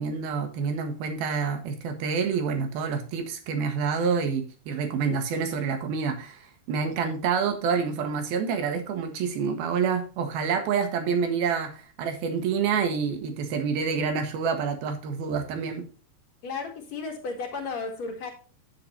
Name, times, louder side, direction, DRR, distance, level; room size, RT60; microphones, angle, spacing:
voice 1, 0.0-15.8, right 6 dB, 75° right, 7 dB, 3.4 m, -28 dB
voice 2, 16.4-18.3, left 4 dB, 50° left, 3 dB, 2.9 m, -34 dB
9.8 x 9.7 x 2.8 m, 0.36 s
omnidirectional pair, 4.4 m